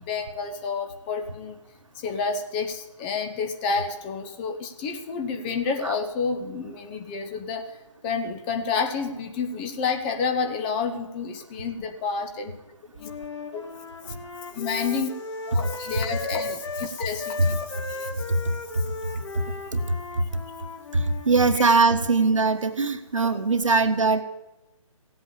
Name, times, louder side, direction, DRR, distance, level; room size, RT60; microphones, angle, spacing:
voice 1, 0.0-1.6 2.0-13.1 13.5-13.6 14.5-15.1 15.5-18.3 21.5-21.7, left 5 dB, 15° left, 6 dB, 0.9 m, -30 dB
Wind instrument woodwind instrument, 13.0-21.3, left 3 dB, 55° left, 2.1 m, -37 dB
voice 2, 20.9-24.2, right 4 dB, 65° right, 7 dB, 1.5 m, -21 dB
16.5 x 8.1 x 8.5 m, 1.0 s
figure-of-eight pair, 145°, 17 cm